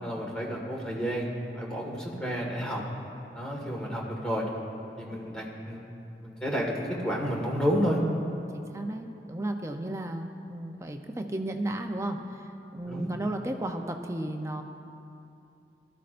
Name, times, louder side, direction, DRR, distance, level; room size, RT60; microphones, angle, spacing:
voice 1, 0.0-1.3 1.5-2.8 3.3-4.5 5.0-5.8 6.2-8.0 12.9-13.1, equal, 5° left, -3 dB, 1.7 m, -30 dB
voice 2, 8.5-14.6, right 1 dB, 15° right, 4 dB, 0.6 m, -34 dB
19.0 x 13.0 x 2.6 m, 2.8 s
head